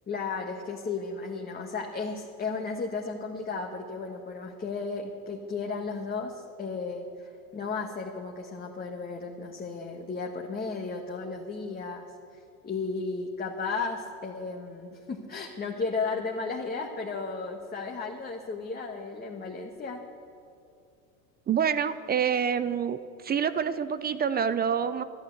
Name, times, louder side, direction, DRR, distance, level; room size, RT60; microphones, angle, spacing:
voice 1, 0.1-12.1 12.3-20.0, left 4 dB, 20° left, 0 dB, 1.4 m, -34 dB
voice 2, 21.5-23.0 23.2-25.0, right 7 dB, 25° right, 13 dB, 0.5 m, -27 dB
12.0 x 11.5 x 8.0 m, 2.5 s
supercardioid pair, 105°, 42 cm